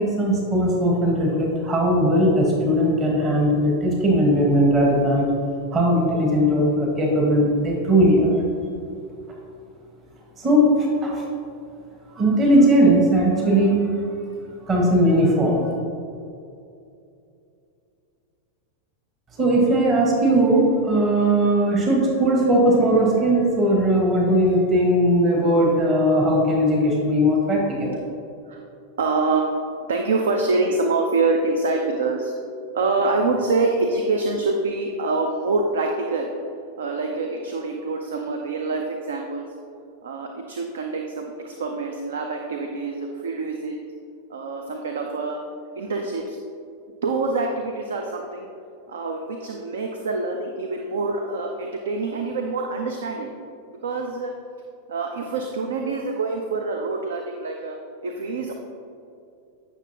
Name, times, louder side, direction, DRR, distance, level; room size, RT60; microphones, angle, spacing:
voice 1, 0.0-5.3 5.7-8.3 10.4-11.2 12.1-13.9 14.7-15.7 19.4-28.0, right 1 dB, 25° right, -2 dB, 1.4 m, -19 dB
voice 2, 29.0-29.6 29.9-32.4 32.7-36.3 36.8-39.4 40.0-43.8 44.3-45.4 45.8-46.4 47.0-48.5 48.9-53.3 53.8-54.3 54.9-57.8 58.0-58.6, right 3 dB, 65° right, 3 dB, 0.5 m, -25 dB
8.9 x 6.2 x 2.9 m, 2.6 s
figure-of-eight pair, 90°, 0 cm